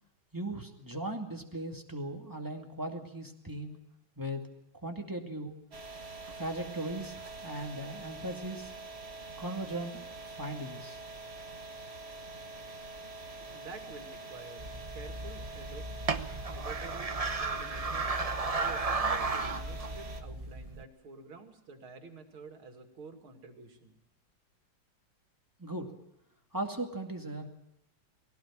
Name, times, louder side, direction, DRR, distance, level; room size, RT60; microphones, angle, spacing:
voice 1, 0.3-3.8 4.2-4.4 4.8-5.5 6.4-8.7 9.4-11.0 25.6-25.9 26.5-27.5, right 1 dB, 10° right, 3 dB, 2.2 m, -38 dB
sound 1, 5.7-20.2, right 2 dB, 35° right, 1.6 m, -45 dB
voice 2, 13.5-15.9 16.5-18.1 18.5-23.9, right 4 dB, 85° right, 5 dB, 3.2 m, -49 dB
sound 2, 14.6-20.8, right 3 dB, 50° right, 0.4 m, -34 dB
20.0 x 17.5 x 8.8 m, 0.79 s
omnidirectional pair, 2.2 m